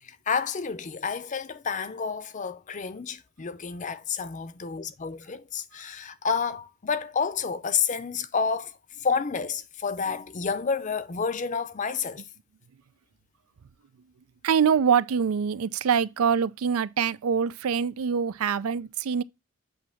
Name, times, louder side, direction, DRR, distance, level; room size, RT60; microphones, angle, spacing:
voice 1, 0.0-12.3, left 5 dB, 35° left, 0.5 m, -30 dB
voice 2, 14.4-19.2, right 7 dB, 85° right, 0.4 m, -24 dB
8.3 x 2.8 x 5.6 m
head